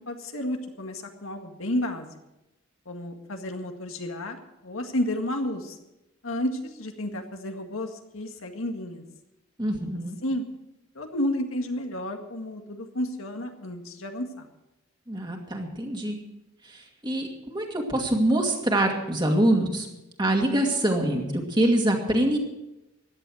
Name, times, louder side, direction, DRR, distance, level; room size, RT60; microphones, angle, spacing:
voice 1, 0.0-2.1 2.9-4.4 4.6-5.8 6.2-9.0 10.2-10.5 11.0-14.5, left 1 dB, 80° left, 4 dB, 1.9 m, -31 dB
voice 2, 9.6-10.2 15.1-16.2 16.7-19.9 20.2-22.4, right 1 dB, 20° right, 2 dB, 2.3 m, -24 dB
16.0 x 11.0 x 6.4 m, 0.93 s
head